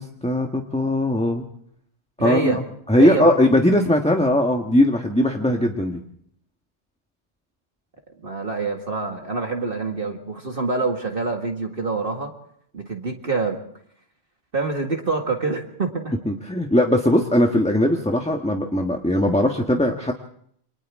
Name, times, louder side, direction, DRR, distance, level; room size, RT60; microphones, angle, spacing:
voice 1, 0.0-1.4 2.2-2.6 2.9-6.0 16.3-20.1, left 1 dB, 5° left, 3 dB, 1.3 m, -19 dB
voice 2, 2.2-2.6 3.0-3.4 8.2-12.3 12.7-13.6 14.5-16.1, right 4 dB, 50° right, 2 dB, 2.1 m, -25 dB
28.5 x 25.0 x 3.6 m, 0.66 s
omnidirectional pair, 1.2 m